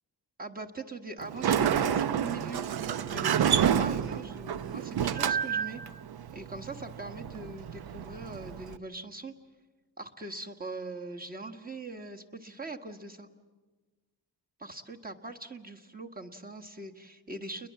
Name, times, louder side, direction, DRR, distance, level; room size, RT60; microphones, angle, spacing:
voice 1, 0.4-2.6 3.1-5.8 6.3-9.3 10.0-13.3 14.6-17.7, right 3 dB, 20° right, 3 dB, 1.5 m, -41 dB
Sliding door, 1.2-8.8, right 8 dB, 70° right, 0.8 m, -29 dB
30.0 x 21.5 x 7.5 m, 1.3 s
wide cardioid pair, 130°, 39 cm